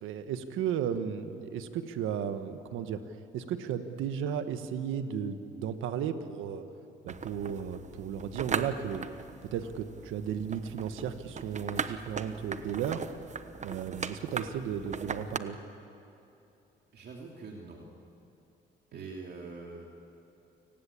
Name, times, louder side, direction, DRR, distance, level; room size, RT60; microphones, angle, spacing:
voice 1, 0.0-3.0 3.3-6.6 7.0-9.0 9.5-13.0 13.6-15.6 18.9-19.0, right 8 dB, 90° right, 9 dB, 1.5 m, -34 dB
sound 1, 7.1-15.4, right 5 dB, 35° right, 1.1 m, -39 dB
voice 2, 16.9-17.9 18.9-19.9, right 4 dB, 55° right, 0 dB, 2.9 m, -44 dB
29.0 x 19.0 x 8.6 m, 2.8 s
cardioid pair, 90°, 20 cm